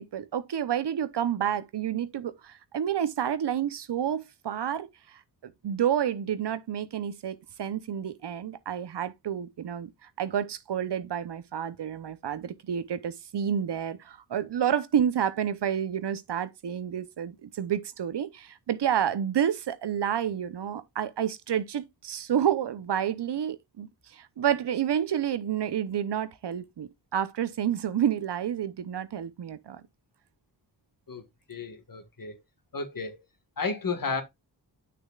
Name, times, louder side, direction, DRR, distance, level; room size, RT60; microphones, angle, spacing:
voice 1, 0.0-29.8, right 9 dB, 70° right, 0.8 m, -29 dB
voice 2, 31.1-32.4 32.7-33.2 33.6-34.2, left 4 dB, 50° left, 1.7 m, -33 dB
8.6 x 6.6 x 2.4 m
cardioid pair, 65°, 42 cm